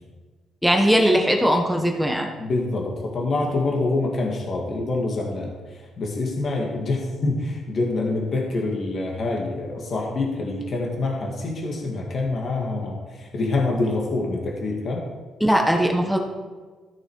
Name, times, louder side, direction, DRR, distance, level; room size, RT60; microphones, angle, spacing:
voice 1, 0.6-2.3 15.4-16.2, equal, ahead, 2 dB, 1.3 m, -19 dB
voice 2, 2.4-15.1, left 2 dB, 50° left, -1 dB, 1.9 m, -26 dB
14.0 x 6.3 x 4.7 m, 1.4 s
cardioid pair, 90°, 0 cm